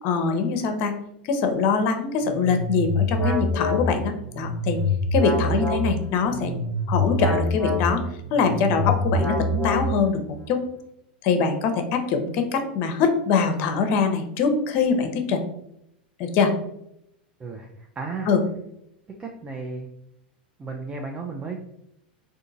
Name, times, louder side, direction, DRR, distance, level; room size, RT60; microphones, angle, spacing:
voice 1, 0.0-0.9 1.2-4.8 5.1-6.6 6.9-8.0 8.3-10.6 11.2-15.4 16.2-16.5 18.3-18.4, left 5 dB, 50° left, 6 dB, 0.6 m, -23 dB
sound 1, 2.2-10.3, left 1 dB, 15° left, 1.1 m, -25 dB
voice 2, 17.4-18.3 19.2-19.9 20.6-21.6, right 4 dB, 20° right, 1 dB, 0.4 m, -34 dB
3.6 x 2.5 x 2.6 m, 0.79 s
hypercardioid pair, 95°, 5 cm